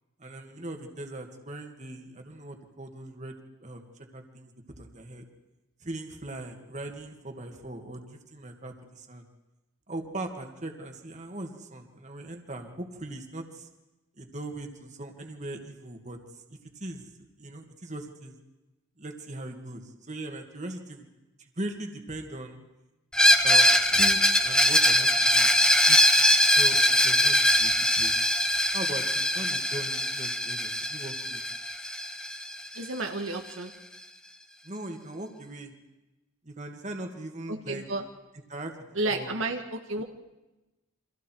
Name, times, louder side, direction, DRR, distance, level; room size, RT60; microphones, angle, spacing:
voice 1, 0.2-3.4 3.6-3.9 4.1-4.5 4.8-5.2 5.8-8.0 8.3-9.2 9.9-13.7 14.2-16.2 16.8-17.0 17.4-18.4 19.0-21.0 21.6-22.6 23.4-25.5 25.9-26.0 26.6-26.8 27.0-27.7 28.0-28.1 28.7-31.4 34.6-35.7 36.4-37.9 38.5-38.7 39.1-39.3, right 1 dB, 35° right, 4 dB, 2.3 m, -39 dB
Screech, 23.1-32.8, equal, 5° left, 1.1 m, -22 dB
voice 2, 32.7-33.7 37.5-38.0 38.9-40.0, right 2 dB, 75° right, 4 dB, 1.7 m, -31 dB
29.0 x 25.5 x 4.7 m, 1.0 s
head